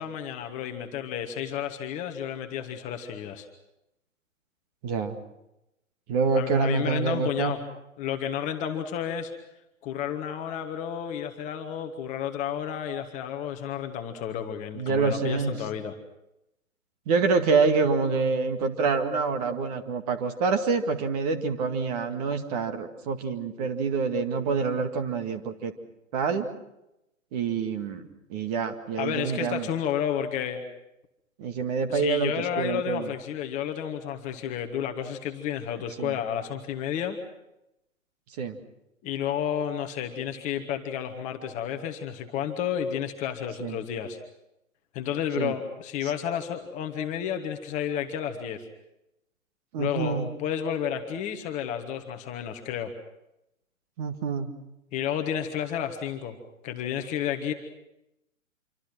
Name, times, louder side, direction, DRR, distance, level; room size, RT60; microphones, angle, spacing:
voice 1, 0.0-3.5 6.3-7.6 8.0-9.3 9.8-15.9 22.3-22.4 28.9-30.6 31.9-37.2 39.0-44.2 44.9-48.6 49.8-52.9 54.9-56.4 56.6-57.5, left 9 dB, 20° left, 5 dB, 1.4 m, -31 dB
voice 2, 4.8-5.2 6.1-7.5 14.8-15.5 17.1-25.7 26.1-26.5 27.3-29.7 31.4-33.1 36.0-36.2 38.4-38.6 43.6-43.8 45.4-45.5 49.7-50.3 54.0-54.5, right 5 dB, 30° right, 7 dB, 2.1 m, -26 dB
26.5 x 25.0 x 6.1 m, 0.88 s
figure-of-eight pair, 125°, 40 cm